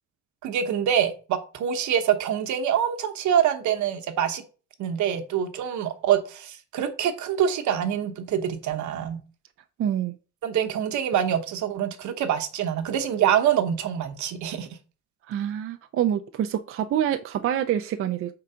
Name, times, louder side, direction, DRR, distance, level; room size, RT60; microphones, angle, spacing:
voice 1, 0.4-4.4 4.8-9.2 10.4-14.7, right 9 dB, 75° right, 1.0 m, -25 dB
voice 2, 9.8-10.1 15.3-18.3, right 10 dB, 45° right, 0.4 m, -26 dB
4.6 x 3.8 x 5.5 m
cardioid pair, 150°, 30 cm